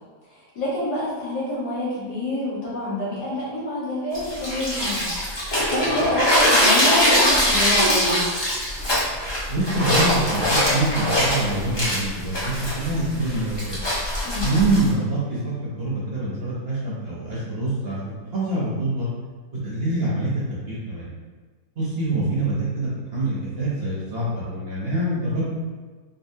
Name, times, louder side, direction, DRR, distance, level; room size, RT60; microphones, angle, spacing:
voice 1, 0.6-5.1 5.7-8.2 14.3-14.5, left 1 dB, 80° left, -8 dB, 1.9 m, -26 dB
sound 1, 4.1-14.9, equal, 25° left, 0.7 m, -22 dB
voice 2, 9.5-13.7 14.4-15.4 15.8-19.1 19.6-20.3 20.7-21.1 21.8-25.4, right 2 dB, 45° right, -7 dB, 0.9 m, -25 dB
4.2 x 3.3 x 2.7 m, 1.4 s
omnidirectional pair, 1.8 m